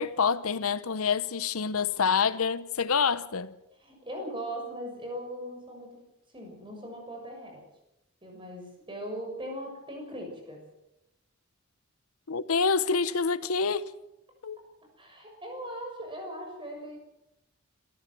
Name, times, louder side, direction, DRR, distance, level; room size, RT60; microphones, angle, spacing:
voice 1, 0.0-3.5 12.3-13.8 14.4-14.6, left 5 dB, 75° left, 0.8 m, -27 dB
voice 2, 3.8-6.0 6.3-7.6 8.2-10.6 15.0-17.0, equal, 25° right, 6.8 m, -39 dB
27.0 x 13.5 x 7.6 m
head